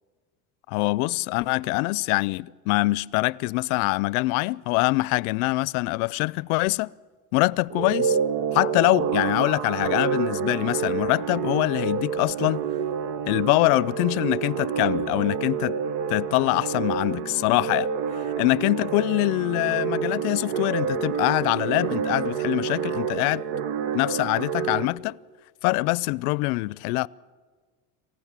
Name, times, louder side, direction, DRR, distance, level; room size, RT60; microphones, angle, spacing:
voice 1, 0.7-6.9 7.3-8.2 8.5-12.6 13.3-15.8 16.1-17.9 18.4-23.4 23.9-25.2 25.6-27.1, left 23 dB, 85° left, 0.5 m, -24 dB
sound 1, 7.7-24.9, right 7 dB, 85° right, 1.1 m, -28 dB
27.0 x 15.5 x 7.4 m
cardioid pair, 165°, 42 cm